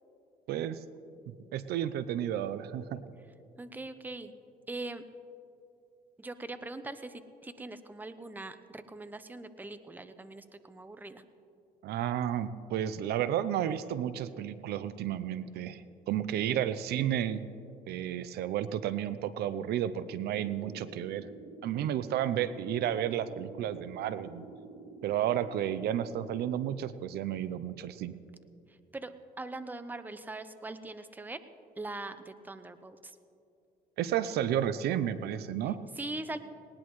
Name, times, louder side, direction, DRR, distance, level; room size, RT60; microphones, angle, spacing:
voice 1, 0.5-0.8 1.3-3.0 11.8-17.4 17.9-21.3 21.6-24.5 25.0-28.1 34.0-35.8, right 10 dB, 70° right, 14 dB, 0.6 m, -32 dB
voice 2, 3.6-4.4 4.7-5.0 6.2-11.2 28.7-31.4 31.8-33.2 35.6-36.4, right 2 dB, 10° right, 11 dB, 0.7 m, -42 dB
sound 1, 20.0-26.6, right 3 dB, 30° right, 1.6 m, -49 dB
19.5 x 19.0 x 3.2 m, 2.6 s
cardioid pair, 110°, 17 cm